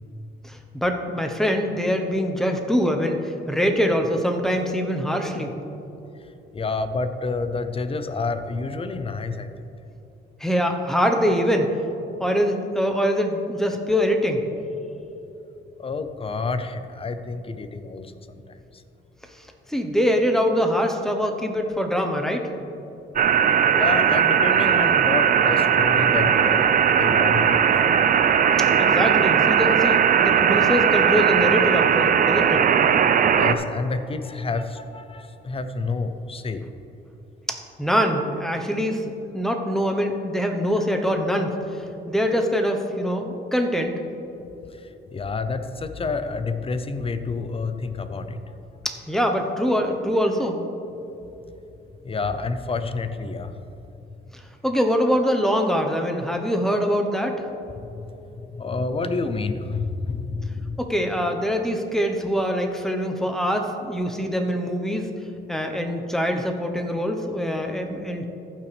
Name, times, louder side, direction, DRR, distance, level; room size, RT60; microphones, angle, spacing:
voice 1, 0.4-5.6 10.4-11.7 12.2-14.4 19.7-22.5 28.8-32.7 37.8-39.0 39.3-44.0 48.8-50.6 54.6-57.4 60.8-65.1 65.5-68.3, equal, ahead, 3 dB, 1.0 m, -23 dB
voice 2, 6.5-9.5 15.8-18.6 23.7-28.0 33.4-36.7 44.8-48.4 52.0-53.5 57.9-58.1 58.5-60.8, left 4 dB, 30° left, 9 dB, 0.6 m, -29 dB
sound 1, 23.2-33.5, right 8 dB, 45° right, 0.5 m, -18 dB
15.0 x 5.9 x 3.4 m, 2.9 s
cardioid pair, 90°, 20 cm